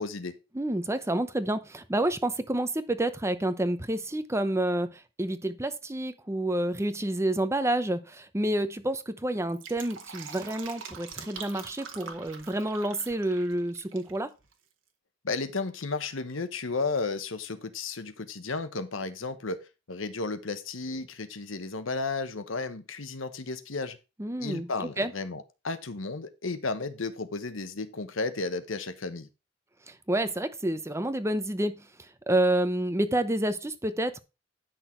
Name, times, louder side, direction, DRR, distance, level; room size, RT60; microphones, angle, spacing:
voice 1, 0.0-0.4 15.2-24.0 24.4-29.3, left 3 dB, 85° left, 1.1 m, -33 dB
voice 2, 0.5-14.3 24.2-24.7 25.0-25.1 29.9-34.2, right 1 dB, 15° right, 0.8 m, -29 dB
Fill (with liquid), 9.4-14.2 14.4-14.5, right 6 dB, 75° right, 1.7 m, -44 dB
10.0 x 6.2 x 4.5 m
head